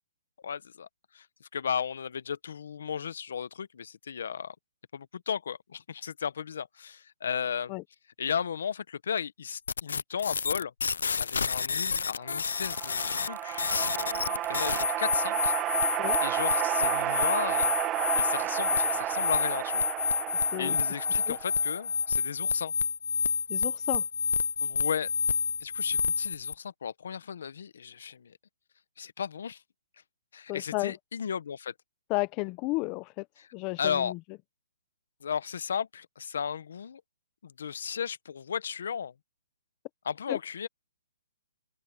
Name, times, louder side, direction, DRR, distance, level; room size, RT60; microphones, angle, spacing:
voice 1, 0.4-0.9 1.1-4.5 4.9-7.7 8.2-10.7 11.2-13.6 13.9-15.5 16.2-17.7 18.2-19.8 20.6-22.7 24.6-25.1 25.6-28.4 29.0-29.6 30.3-31.7 33.8-34.1 35.2-37.0 37.4-39.1 40.0-40.7, left 7 dB, 65° left, 0.8 m, -35 dB
sound 1, 9.7-26.5, left 5 dB, 85° left, 0.6 m, -29 dB
sound 2, 12.3-21.8, right 14 dB, 15° right, 0.5 m, -32 dB
voice 2, 23.5-24.0 30.5-30.9 32.1-33.3 33.5-34.2 40.3-40.4, left 23 dB, 25° left, 0.8 m, -32 dB
hypercardioid pair, 165°, 0 cm